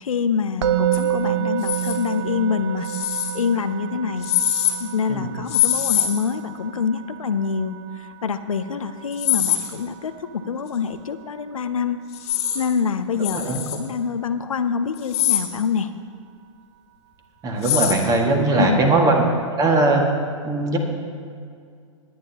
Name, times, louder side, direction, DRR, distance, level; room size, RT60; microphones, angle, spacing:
voice 1, 0.0-2.9 3.3-4.3 4.8-7.8 8.2-12.0 12.5-15.9 18.6-18.8, left 6 dB, 80° left, 10 dB, 0.6 m, -25 dB
Musical instrument, 0.6-11.7, right 11 dB, 60° right, 0.5 m, -29 dB
sound 1, 0.9-1.0 1.6-2.0 2.8-3.3 4.2-4.7 5.5-6.1 9.1-9.7 12.1-12.6 13.2-13.8 15.0-15.5 17.6-18.0, left 11 dB, 50° left, 1.6 m, -22 dB
voice 2, 13.2-13.6 17.4-19.2 19.6-20.0 20.4-20.8, right 2 dB, 20° right, 2 dB, 1.7 m, -20 dB
20.5 x 9.4 x 2.8 m, 2.2 s
hypercardioid pair, 110°, 17 cm